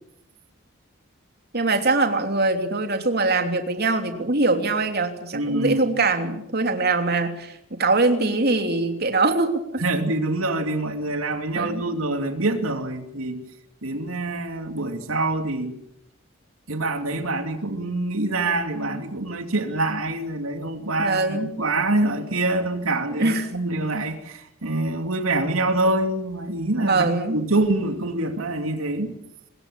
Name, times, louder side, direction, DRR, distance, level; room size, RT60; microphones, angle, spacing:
voice 1, 1.5-9.8 11.5-11.9 21.0-21.5 23.1-23.5 26.8-27.4, right 3 dB, 50° right, 5 dB, 3.2 m, -23 dB
voice 2, 5.3-5.8 9.8-13.4 13.8-15.8 16.7-27.1 27.3-29.1, right 2 dB, 85° right, 6 dB, 2.7 m, -25 dB
25.0 x 21.5 x 8.6 m, 0.77 s
head